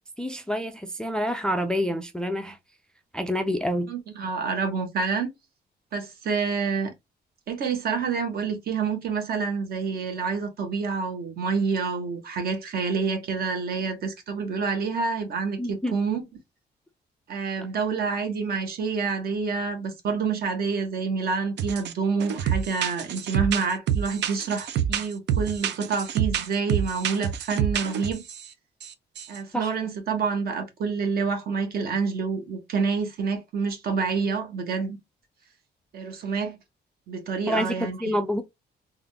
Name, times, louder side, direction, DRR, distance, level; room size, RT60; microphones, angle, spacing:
voice 1, 0.2-2.6 3.1-3.9 15.6-15.9 29.5-29.7 37.5-38.4, equal, 5° left, 0.3 m, -27 dB
voice 2, 3.9-5.3 5.9-6.9 7.5-16.2 17.3-28.2 29.3-35.0 35.9-36.6 37.1-38.1, right 5 dB, 60° right, 1.3 m, -28 dB
sound 1, 21.6-21.9 22.2-28.4 28.8-28.9 29.2-29.4, right 9 dB, 80° right, 0.6 m, -27 dB
3.6 x 2.5 x 3.4 m
cardioid pair, 170°, 18 cm